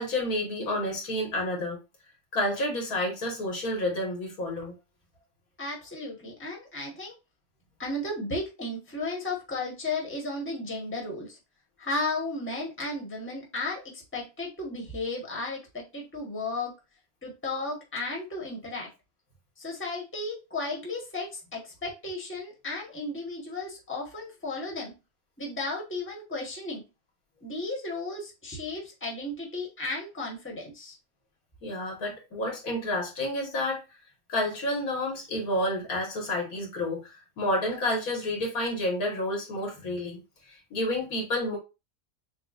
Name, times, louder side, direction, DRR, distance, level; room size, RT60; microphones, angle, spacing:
voice 1, 0.0-1.8 2.3-4.7 31.6-33.8 34.3-37.1 37.4-40.2 40.5-41.6, left 1 dB, 85° left, 0 dB, 2.1 m, -30 dB
voice 2, 5.6-7.1 7.8-11.4 11.8-16.7 17.2-18.9 19.6-24.9 25.4-26.8 27.4-31.0, left 2 dB, 10° left, -1 dB, 1.1 m, -34 dB
6.7 x 2.3 x 2.4 m, 0.26 s
omnidirectional pair, 1.5 m